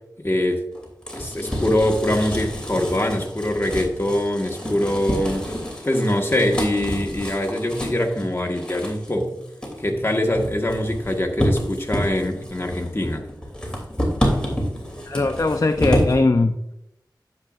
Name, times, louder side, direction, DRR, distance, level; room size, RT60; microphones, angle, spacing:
voice 1, 0.2-0.6 1.1-5.5 5.8-9.4 9.8-13.2, left 1 dB, 30° left, 1 dB, 1.5 m, -23 dB
sound 1, 0.7-16.1, equal, 10° left, 2.9 m, -28 dB
voice 2, 15.1-16.7, left 2 dB, 45° left, 7 dB, 0.5 m, -20 dB
10.0 x 7.4 x 2.5 m, 0.82 s
wide cardioid pair, 45°, 8 cm